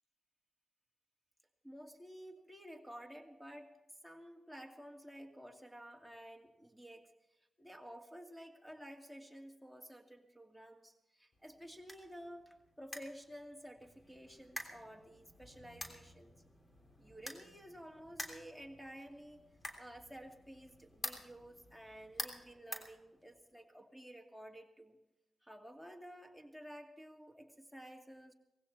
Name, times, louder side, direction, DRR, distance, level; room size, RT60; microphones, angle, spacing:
voice 1, 1.6-3.7 4.0-7.1 7.6-16.4 17.0-19.4 19.8-25.0 25.4-28.3, equal, 5° left, 3 dB, 2.6 m, -52 dB
sound 1, 11.3-23.6, left 1 dB, 35° left, 3.2 m, -50 dB
18.5 x 16.0 x 4.3 m, 0.91 s
supercardioid pair, 45°, 0 cm